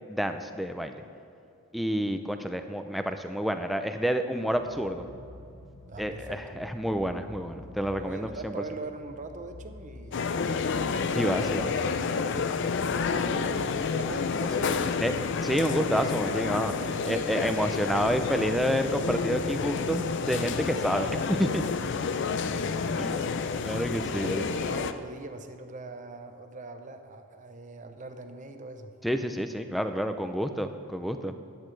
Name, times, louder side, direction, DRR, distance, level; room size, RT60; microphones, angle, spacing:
voice 1, 0.1-1.0 1.7-5.1 6.0-8.5 11.1-11.8 15.0-15.1 15.4-16.7 17.0-21.6 23.0-23.2 23.6-24.4 29.0-31.3, equal, ahead, 7 dB, 0.5 m, -29 dB
sound 1, 4.5-13.7, left 2 dB, 70° left, 1.0 m, -49 dB
voice 2, 5.9-6.6 7.9-10.3 11.3-12.0 13.2-15.3 16.8-17.9 21.6-23.3 23.9-28.9, right 2 dB, 35° right, 7 dB, 0.7 m, -42 dB
sound 2, 10.1-24.9, left 5 dB, 55° left, 0.4 m, -29 dB
13.5 x 10.5 x 3.3 m, 2.6 s
head